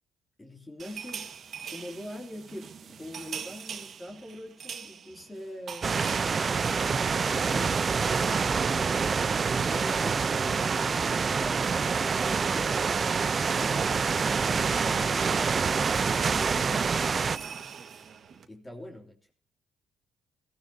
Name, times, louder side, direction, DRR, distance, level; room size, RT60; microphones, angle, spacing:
voice 1, 0.4-1.3 1.6-5.9 7.3-9.0 9.4-13.0 13.4-17.0 17.4-17.6 18.5-19.3, left 1 dB, 20° left, 0 dB, 3.0 m, -43 dB
sound 1, 0.8-8.7 8.9-9.1 9.4-18.5, right 7 dB, 55° right, 1.8 m, -45 dB
sound 2, 5.8-17.4, right 5 dB, 40° right, 0.7 m, -26 dB
22.0 x 15.5 x 2.9 m, 0.37 s
cardioid pair, 90°, 0 cm